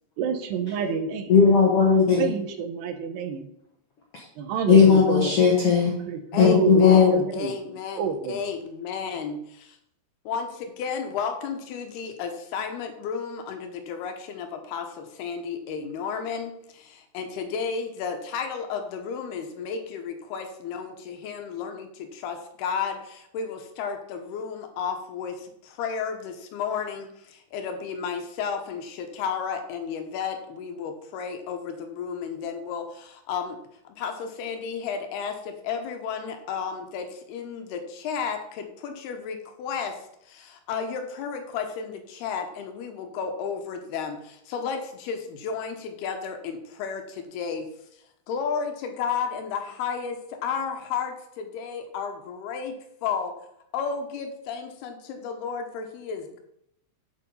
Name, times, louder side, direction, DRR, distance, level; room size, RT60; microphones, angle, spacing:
voice 1, 0.2-1.4 2.1-3.4 4.4-5.3 6.1-7.5 8.0-8.4, right 6 dB, 80° right, 7 dB, 3.1 m, -28 dB
voice 2, 1.3-2.3 4.1-4.2 4.7-6.0 6.4-7.2, left 6 dB, 60° left, -3 dB, 1.6 m, -17 dB
voice 3, 6.3-9.8 10.3-40.0 40.3-47.7 48.3-53.3 53.7-56.4, left 6 dB, 75° left, 5 dB, 3.0 m, -33 dB
8.3 x 7.4 x 5.4 m, 0.76 s
omnidirectional pair, 4.8 m